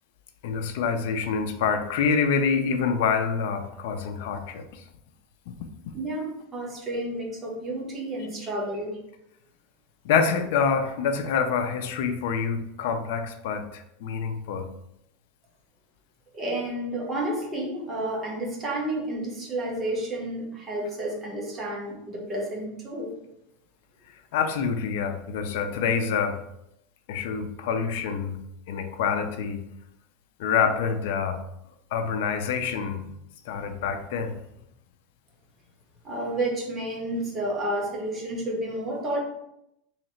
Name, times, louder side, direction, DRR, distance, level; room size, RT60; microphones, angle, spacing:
voice 1, 0.4-4.8 5.5-5.6 10.0-14.7 24.3-26.4 27.1-28.4 28.7-29.6 30.4-31.4 31.9-33.1 33.5-34.4, left 6 dB, 65° left, 8 dB, 0.5 m, -26 dB
voice 2, 5.9-9.0 16.3-23.1 36.0-39.2, right 1 dB, 15° right, -2 dB, 1.0 m, -31 dB
3.2 x 2.9 x 4.2 m, 0.81 s
supercardioid pair, 160°, 0 cm